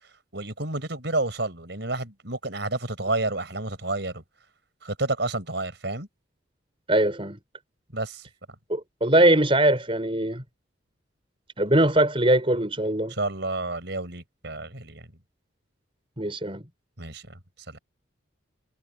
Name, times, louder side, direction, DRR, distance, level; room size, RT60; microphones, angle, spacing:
voice 1, 0.3-4.2 4.8-6.1 7.9-8.2 13.1-15.1 17.0-17.4 17.7-17.8, right 2 dB, 60° right, 5.5 m, -30 dB
voice 2, 6.9-7.4 8.7-10.4 11.6-13.1 16.2-16.6, right 1 dB, 30° right, 5.2 m, -21 dB
head